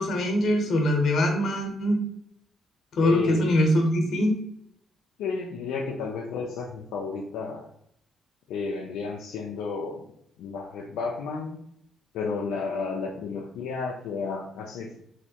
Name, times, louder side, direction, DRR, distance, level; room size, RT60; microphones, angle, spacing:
voice 1, 0.0-2.0 2.9-4.4, left 1 dB, 60° left, 2 dB, 0.9 m, -23 dB
voice 2, 3.0-3.6 5.2-7.7 8.5-10.0 10.4-11.6 12.1-15.0, left 4 dB, 90° left, -1 dB, 0.4 m, -32 dB
3.2 x 2.6 x 2.8 m, 0.73 s
cardioid pair, 90°, 0 cm